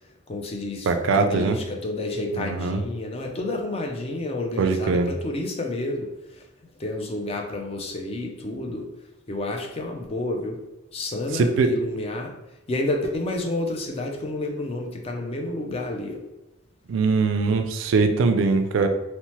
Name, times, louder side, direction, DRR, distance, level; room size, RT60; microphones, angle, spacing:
voice 1, 0.3-6.4 6.8-8.8 9.3-10.6 10.9-12.3 12.7-16.2, left 2 dB, 30° left, 2 dB, 0.4 m, -30 dB
voice 2, 0.9-1.6 2.3-2.8 4.6-5.1 11.3-11.7 16.9-18.9, right 4 dB, 70° right, 7 dB, 0.3 m, -21 dB
2.7 x 2.0 x 3.0 m, 0.98 s
head